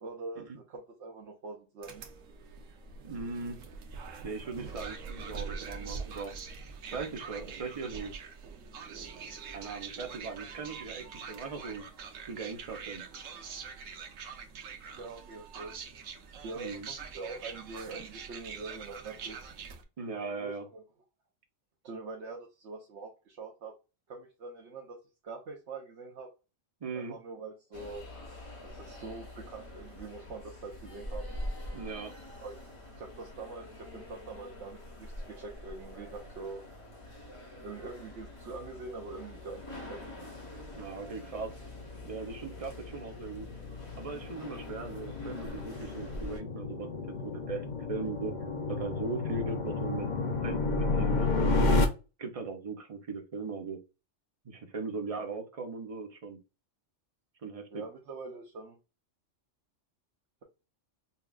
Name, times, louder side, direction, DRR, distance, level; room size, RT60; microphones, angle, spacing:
voice 1, 0.0-2.0 14.9-15.7 16.4-19.4 20.1-20.8 21.8-23.7 24.1-25.0 25.2-26.3 26.9-28.0 28.6-31.4 32.4-32.6 33.0-36.6 37.6-39.6 39.9-40.0 57.7-58.8, right 3 dB, 65° right, 0 dB, 1.1 m, -44 dB
sound 1, 1.8-19.8, right 5 dB, 85° right, 1.1 m, -44 dB
voice 2, 3.0-3.6 4.2-6.3 6.9-8.1 9.5-11.8 12.3-13.0 16.5-16.9 20.0-20.6 26.8-27.1 31.7-32.1 40.7-41.5 42.0-43.5 44.0-46.9 47.2-48.3 48.7-50.1 50.4-51.6 52.2-53.8 54.4-56.4 57.4-57.8, right 4 dB, 35° right, 4 dB, 0.7 m, -39 dB
sound 2, 27.7-46.4, left 1 dB, 25° left, 1.2 m, -45 dB
sound 3, 40.7-51.9, left 3 dB, 45° left, 0.7 m, -32 dB
5.5 x 2.4 x 2.3 m, 0.29 s
omnidirectional pair, 1.3 m